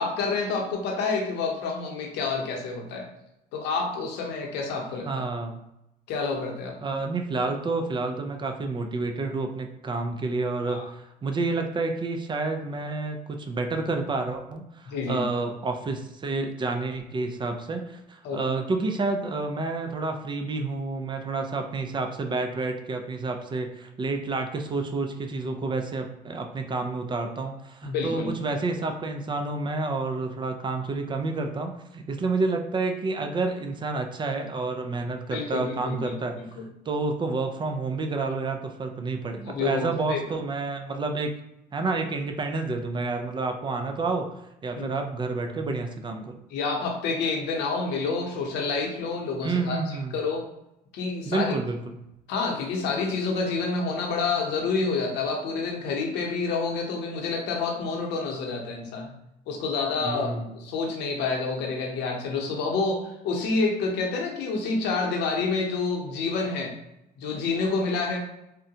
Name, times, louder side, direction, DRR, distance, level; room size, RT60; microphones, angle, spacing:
voice 1, 0.0-3.1 3.5-5.2 6.1-6.8 10.7-10.9 14.9-15.3 18.2-18.4 27.8-28.3 35.3-36.6 39.4-40.2 44.7-45.0 46.5-50.4 50.9-51.5 52.3-59.1 59.5-66.7 67.2-68.2, left 4 dB, 85° left, 1 dB, 0.7 m, -28 dB
voice 2, 5.0-5.6 6.8-36.4 36.9-41.3 41.7-44.3 44.6-46.4 49.4-50.2 51.3-52.0 60.0-60.6, right 3 dB, 30° right, 5 dB, 0.4 m, -29 dB
3.6 x 2.1 x 2.7 m, 0.85 s
cardioid pair, 110°, 17 cm